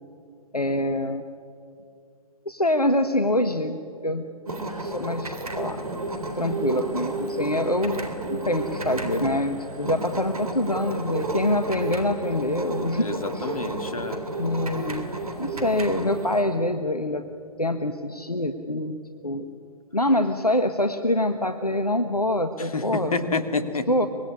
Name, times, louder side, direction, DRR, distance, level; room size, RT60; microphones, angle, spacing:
voice 1, 0.5-1.2 2.4-4.3 4.8-5.8 6.3-13.1 13.3-13.5 14.4-15.1 15.4-17.2 17.6-19.0 19.2-19.5 19.9-23.2 23.9-24.1, left 1 dB, 90° left, 8 dB, 1.3 m, -25 dB
sound 1, 4.5-16.4, right 2 dB, 75° right, 3.9 m, -32 dB
voice 2, 13.0-14.3 22.6-23.9, left 3 dB, 70° left, 9 dB, 2.4 m, -29 dB
24.5 x 20.5 x 9.8 m, 2.5 s
figure-of-eight pair, 125°, 19 cm